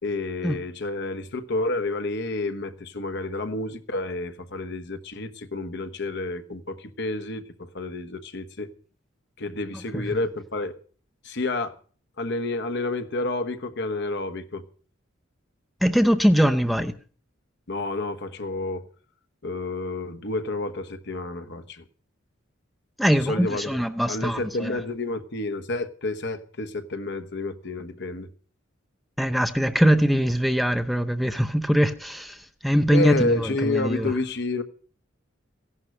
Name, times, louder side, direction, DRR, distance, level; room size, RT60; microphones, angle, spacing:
voice 1, 0.0-8.7 9.4-10.7 11.2-11.8 12.2-14.6 17.7-18.9 19.4-21.8 23.1-28.3 32.9-34.6, left 2 dB, 60° left, 1.3 m, -30 dB
voice 2, 15.8-16.9 23.0-24.7 29.2-34.1, equal, ahead, 0.6 m, -22 dB
16.0 x 11.5 x 6.5 m
head